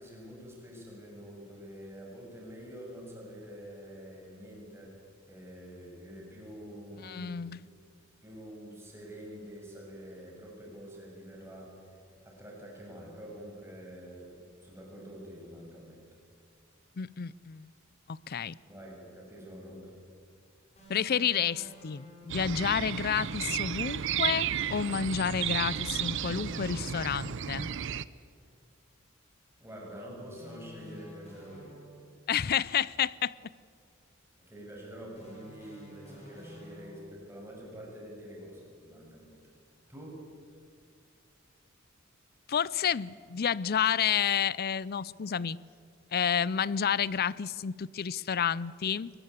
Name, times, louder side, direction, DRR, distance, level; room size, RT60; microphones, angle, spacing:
voice 1, 0.0-5.0 5.3-7.5 8.2-16.0 18.7-19.9 29.6-31.8 34.4-39.4 39.9-40.2, equal, 10° right, 6.8 m, -46 dB
voice 2, 7.0-7.6 17.0-17.7 18.1-18.6 20.9-27.7 32.3-33.3 42.5-45.6 46.1-49.1, left 8 dB, 50° left, 0.5 m, -30 dB
sound 1, 20.8-22.6 25.6-27.4 30.3-32.3 35.2-37.4, equal, 35° left, 6.3 m, -51 dB
sound 2, 22.3-28.0, right 9 dB, 65° right, 0.6 m, -33 dB
23.0 x 20.5 x 8.3 m
head